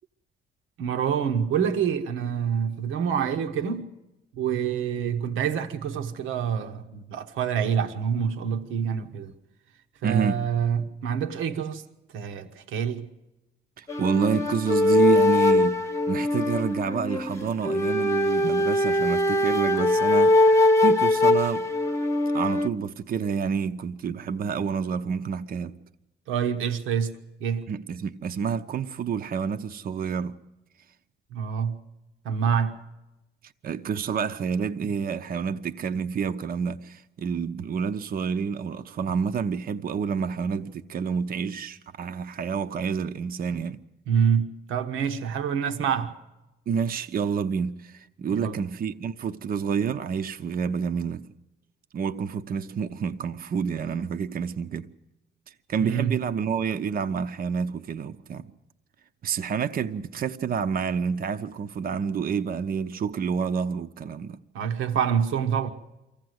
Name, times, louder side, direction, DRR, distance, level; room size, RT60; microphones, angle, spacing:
voice 1, 0.8-3.9 4.4-9.3 10.0-11.8 12.1-13.1 26.3-27.7 31.3-31.8 32.2-32.8 44.1-46.2 48.3-48.6 55.8-56.2 64.5-65.7, right 7 dB, 90° right, 1.1 m, -26 dB
voice 2, 10.0-10.4 13.8-21.7 22.3-25.7 27.7-30.4 33.6-43.8 46.7-51.3 51.9-54.9 55.5-58.5 59.2-64.4, right 6 dB, 50° right, 0.7 m, -28 dB
sound 1, 13.9-22.7, left 2 dB, 15° left, 1.0 m, -22 dB
23.5 x 15.5 x 7.9 m
cardioid pair, 90°, 20 cm